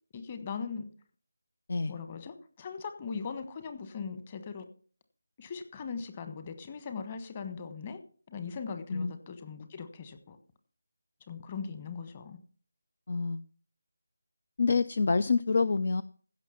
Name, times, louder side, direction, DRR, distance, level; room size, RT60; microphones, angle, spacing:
voice 1, 0.1-0.9 1.9-4.7 5.4-8.0 8.3-10.4 11.3-12.4, left 5 dB, 25° left, 9 dB, 1.3 m, -39 dB
voice 2, 13.1-13.4 14.6-16.0, left 4 dB, 50° left, 15 dB, 0.5 m, -27 dB
15.5 x 6.2 x 5.8 m, 0.42 s
figure-of-eight pair, 160°, 0 cm